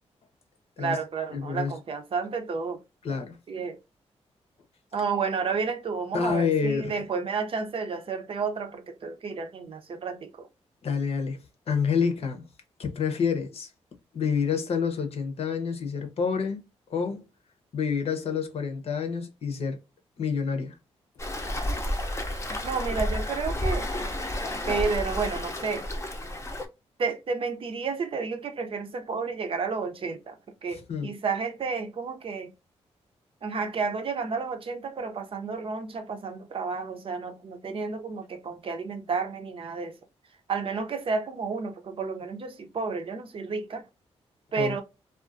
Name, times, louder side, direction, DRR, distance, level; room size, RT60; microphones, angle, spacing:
voice 1, 0.8-2.8 3.5-3.8 4.9-10.5 22.6-23.9 24.7-25.9 27.0-32.5 33.4-39.9 40.5-43.8 44.5-44.8, right 5 dB, 55° right, 0.5 m, -31 dB
voice 2, 1.3-1.7 3.0-3.4 6.1-6.9 10.8-11.4 11.7-12.4 12.8-13.7 14.1-16.6 16.9-17.2 17.7-19.8 20.2-20.8 30.7-31.1 44.6-44.8, left 6 dB, 60° left, 0.7 m, -28 dB
Waves surf, 21.2-26.7, left 1 dB, 25° left, 0.6 m, -31 dB
2.4 x 2.3 x 2.4 m
cardioid pair, 85°, 11 cm